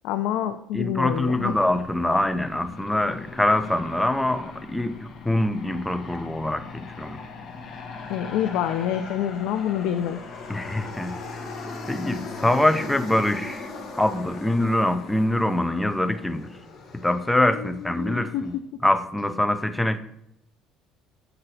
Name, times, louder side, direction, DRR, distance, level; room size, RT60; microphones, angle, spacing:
voice 1, 0.0-1.5 8.1-10.2 17.5-18.6, left 10 dB, 80° left, 8 dB, 0.4 m, -27 dB
voice 2, 0.7-7.2 10.5-11.2 11.9-13.7 14.0-16.5 16.9-18.5 18.8-20.0, left 1 dB, 5° left, 10 dB, 0.3 m, -24 dB
Aircraft, 1.1-18.6, left 3 dB, 40° left, 1.1 m, -39 dB
7.8 x 3.9 x 4.4 m, 0.78 s
cardioid pair, 150°, 0 cm